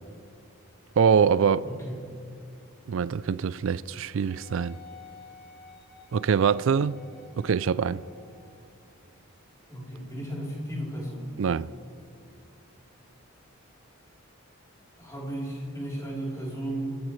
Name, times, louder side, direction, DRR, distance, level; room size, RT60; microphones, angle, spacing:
voice 1, 1.0-1.7 2.9-4.8 6.1-7.0 7.4-8.0 11.4-11.7, right 6 dB, 60° right, 0.3 m, -24 dB
voice 2, 1.6-2.0 9.7-11.2 15.0-17.0, right 1 dB, 15° left, 3.5 m, -34 dB
Wind instrument woodwind instrument, 4.3-8.6 9.3-9.4, left 4 dB, 40° left, 3.8 m, -51 dB
30.0 x 12.5 x 3.2 m
head